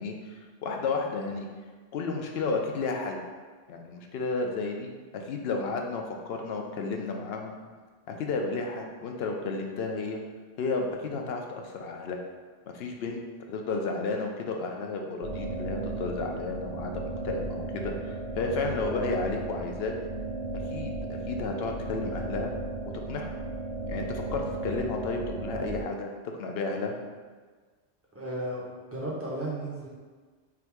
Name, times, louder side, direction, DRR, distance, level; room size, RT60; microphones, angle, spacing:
voice 1, 0.0-1.5 1.9-3.2 3.7-7.6 8.1-10.2 10.6-12.2 12.7-19.9 20.7-22.5 23.1-23.3 23.9-26.1 26.4-27.0, left 3 dB, 70° left, 2 dB, 0.8 m, -32 dB
sound 1, 15.2-25.8, right 2 dB, 70° right, 0.8 m, -35 dB
voice 2, 28.1-29.9, right 1 dB, 15° right, -5 dB, 0.7 m, -34 dB
3.6 x 2.6 x 4.5 m, 1.5 s
omnidirectional pair, 1.1 m